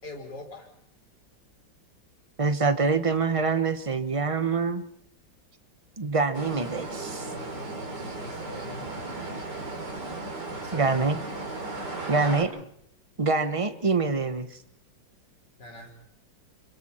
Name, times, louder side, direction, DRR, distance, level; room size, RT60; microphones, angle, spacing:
voice 1, 0.0-0.7 7.2-9.1 10.5-11.1 12.0-12.6 15.6-16.0, left 2 dB, 65° left, 2 dB, 6.0 m, -43 dB
voice 2, 2.4-4.8 6.0-7.3 10.7-11.2 12.1-12.5 13.2-14.5, right 4 dB, 25° right, 10 dB, 0.8 m, -25 dB
sound 1, 6.3-12.4, right 2 dB, 60° right, 3.7 m, -36 dB
29.5 x 25.5 x 4.4 m, 0.70 s
omnidirectional pair, 2.1 m